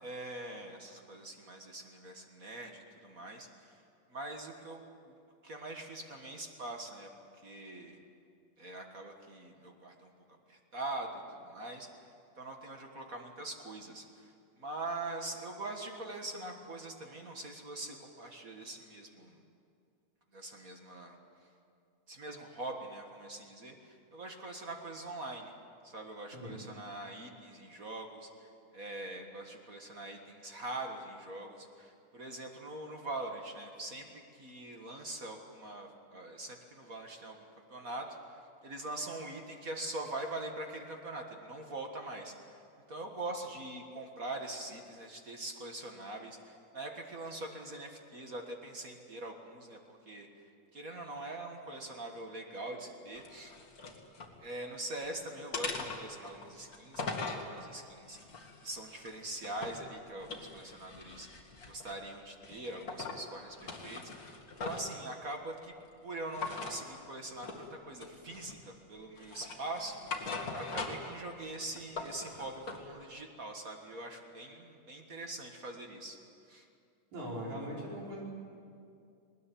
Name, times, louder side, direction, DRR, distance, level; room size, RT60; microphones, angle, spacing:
voice 1, 0.0-3.8 4.1-4.8 5.4-8.0 8.6-10.1 10.5-11.9 12.4-19.4 20.3-21.2 22.1-25.5 25.8-42.6 42.9-50.3 50.7-53.5 54.4-58.2 58.6-61.3 61.7-65.7 66.0-76.2 76.5-76.7, right 2 dB, 35° right, 3 dB, 1.5 m, -43 dB
sound 1, 53.2-54.3 54.8-55.1 55.5-57.5 58.1-59.9 60.2-62.0 62.4-63.2 63.5-65.0 66.3-66.8 67.4-67.7 68.0-68.7 69.2-71.2 71.5-72.8, left 3 dB, 35° left, 2.0 m, -41 dB
voice 2, 77.1-78.2, equal, 65° right, -4 dB, 6.7 m, -40 dB
20.0 x 20.0 x 9.2 m, 2.4 s
omnidirectional pair, 3.6 m